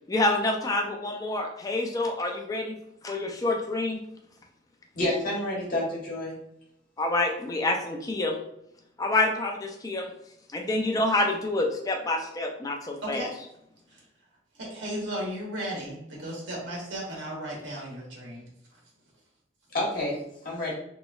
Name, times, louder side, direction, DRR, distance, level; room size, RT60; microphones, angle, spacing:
voice 1, 0.1-2.8 3.0-4.0 7.0-8.4 9.0-10.1 10.5-13.3, left 2 dB, 20° left, 2 dB, 0.4 m, -27 dB
voice 2, 4.9-6.4 19.7-20.2 20.4-20.7, left 1 dB, 45° left, -4 dB, 1.0 m, -28 dB
voice 3, 13.0-13.3 13.9-14.0 14.6-18.4, right 1 dB, 70° right, -3 dB, 1.0 m, -35 dB
3.0 x 3.0 x 2.3 m, 0.77 s
head